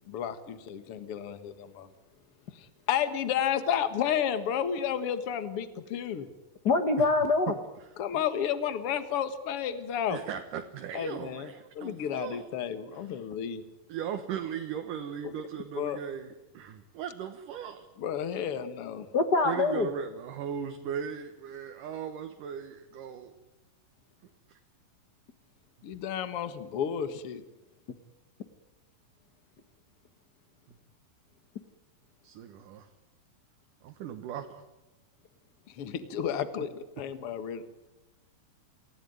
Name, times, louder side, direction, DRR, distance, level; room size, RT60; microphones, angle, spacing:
voice 1, 0.1-1.9 2.5-6.3 8.0-10.2 10.9-11.5 11.8-13.6 15.2-15.3 15.8-16.0 18.0-19.1 25.8-27.4 35.7-37.6, left 9 dB, 50° left, 11 dB, 2.1 m, -32 dB
voice 2, 6.6-7.5 19.1-19.9, left 3 dB, 80° left, 8 dB, 0.9 m, -24 dB
voice 3, 7.5-8.2 10.1-12.5 12.9-13.1 13.9-17.9 19.4-23.3 24.5-24.6 30.7-30.8 32.2-32.9 33.8-34.6 36.6-36.7, right 8 dB, 70° right, 5 dB, 2.8 m, -38 dB
28.5 x 17.5 x 9.5 m, 0.99 s
omnidirectional pair, 4.1 m